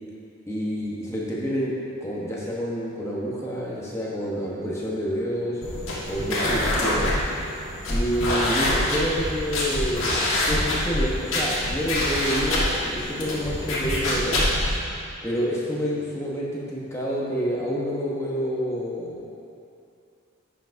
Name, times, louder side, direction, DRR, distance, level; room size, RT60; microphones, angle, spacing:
voice 1, 0.5-1.7 2.0-5.6 6.1-7.2 7.9-14.4 15.2-19.3, equal, 15° left, -5 dB, 0.9 m, -28 dB
sound 1, 5.6-14.8, left 1 dB, 75° left, 1.5 m, -25 dB
11.0 x 5.7 x 2.6 m, 2.6 s
head